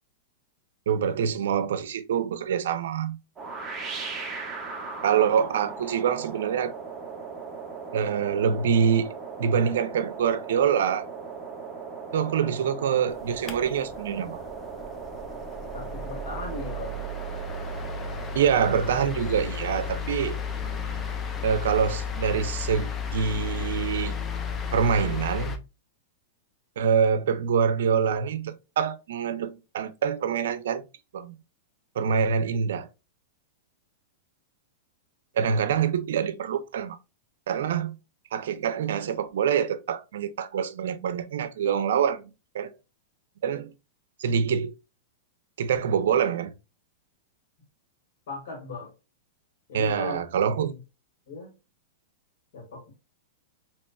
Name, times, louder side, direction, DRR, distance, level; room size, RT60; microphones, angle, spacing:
voice 1, 0.9-3.2 5.0-6.7 7.9-9.1 9.4-11.1 12.1-14.4 18.3-20.4 21.4-24.2 24.7-25.5 26.8-30.8 31.1-31.3 32.0-32.9 35.4-37.0 37.5-38.0 38.3-42.2 42.5-42.7 43.4-43.7 44.2-44.7 45.6-46.5 49.7-50.7, right 7 dB, 75° right, 0.5 m, -25 dB
sound 1, 3.4-22.2, right 5 dB, 15° right, 0.8 m, -39 dB
sound 2, 13.1-25.6, left 5 dB, 20° left, 0.5 m, -34 dB
voice 2, 15.7-17.0 48.3-48.9 49.7-50.2 50.5-50.8 51.3-51.5 52.5-52.9, left 3 dB, 75° left, 1.9 m, -38 dB
4.2 x 2.9 x 2.2 m
hypercardioid pair, 140°, 0 cm